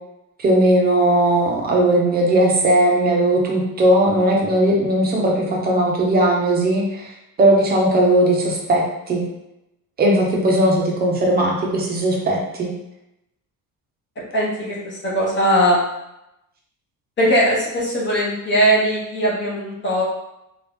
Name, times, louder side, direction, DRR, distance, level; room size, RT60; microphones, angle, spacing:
voice 1, 0.4-9.2 10.0-12.7, right 1 dB, 25° right, -1 dB, 0.6 m, -18 dB
voice 2, 14.3-15.8 17.2-20.0, equal, 30° left, -6 dB, 0.8 m, -19 dB
2.9 x 2.4 x 3.4 m, 0.87 s
cardioid pair, 175°, 35 cm